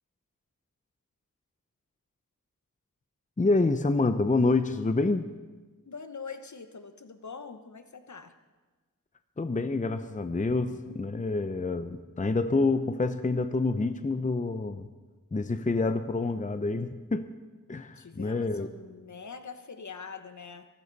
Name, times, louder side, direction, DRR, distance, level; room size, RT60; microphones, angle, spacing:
voice 1, 3.4-5.3 9.4-14.9 15.3-17.3 17.7-18.7, left 3 dB, 25° left, 10 dB, 0.7 m, -27 dB
voice 2, 5.9-8.3 17.9-20.7, left 5 dB, 55° left, 9 dB, 1.1 m, -43 dB
23.5 x 12.0 x 4.1 m, 1.3 s
wide cardioid pair, 60°, 34 cm